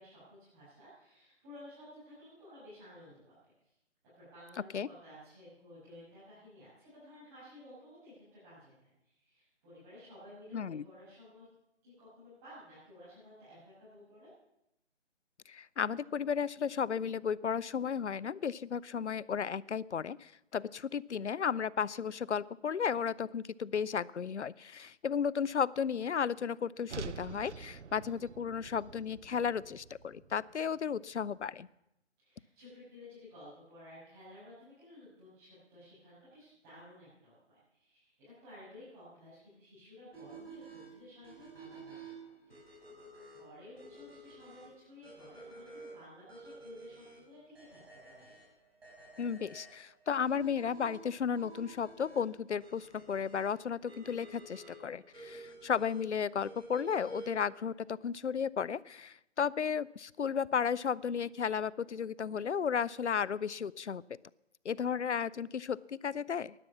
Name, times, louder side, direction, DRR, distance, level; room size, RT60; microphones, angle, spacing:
voice 1, 0.0-3.3 4.1-11.5 11.8-14.3 32.2-42.6 43.3-48.4, left 1 dB, 20° right, -13 dB, 6.6 m, -54 dB
voice 2, 10.5-10.8 15.5-31.7 49.2-64.0 64.6-66.5, left 7 dB, 70° left, 22 dB, 0.5 m, -34 dB
sound 1, 26.9-31.1, right 6 dB, 75° right, 0.6 m, -47 dB
sound 2, 40.1-57.5, right 3 dB, 55° right, 6.4 m, -51 dB
12.0 x 11.5 x 7.1 m, 0.85 s
figure-of-eight pair, 145°, 35 cm